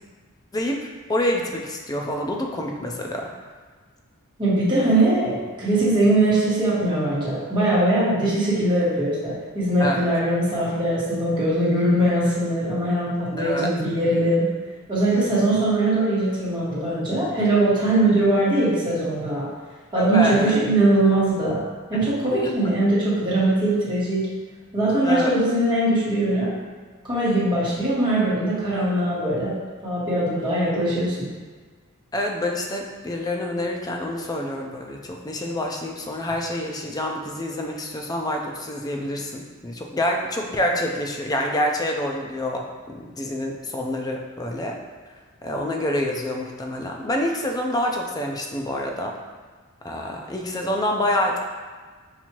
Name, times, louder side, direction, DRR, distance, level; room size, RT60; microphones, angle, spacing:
voice 1, 0.5-3.3 9.8-10.1 13.4-13.7 20.0-20.6 25.0-25.3 32.1-44.8 45.4-49.2 49.8-51.4, left 1 dB, 20° left, 1 dB, 0.4 m, -27 dB
voice 2, 4.4-14.5 14.9-19.5 19.9-21.6 21.9-24.3 24.7-26.5 27.0-29.5 29.8-31.2, right 1 dB, 20° right, -9 dB, 1.5 m, -21 dB
5.8 x 2.7 x 2.9 m, 1.5 s
head